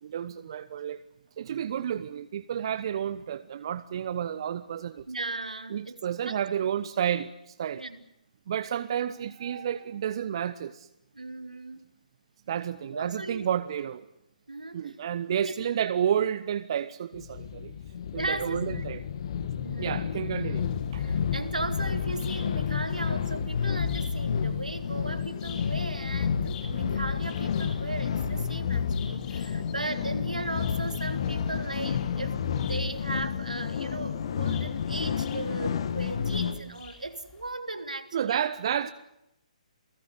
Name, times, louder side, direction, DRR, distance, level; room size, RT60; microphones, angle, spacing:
voice 1, 0.0-1.0 1.4-5.0 5.7-7.8 8.5-10.9 12.5-14.1 14.7-17.7 18.1-19.0 19.8-20.7 20.9-21.0 38.1-38.9, right 9 dB, 40° right, 0.9 m, -31 dB
voice 2, 5.1-6.0 6.2-6.6 7.7-8.0 11.1-11.8 12.9-13.4 14.5-14.9 15.3-15.5 15.8-15.9 18.2-18.8 19.6-20.3 21.0-38.4, right 2 dB, 75° right, 3.2 m, -37 dB
sound 1, 17.1-36.6, left 7 dB, 40° left, 1.8 m, -30 dB
sound 2, 20.6-37.5, left 7 dB, 20° left, 5.5 m, -51 dB
29.0 x 18.0 x 9.5 m
figure-of-eight pair, 135°, 4 cm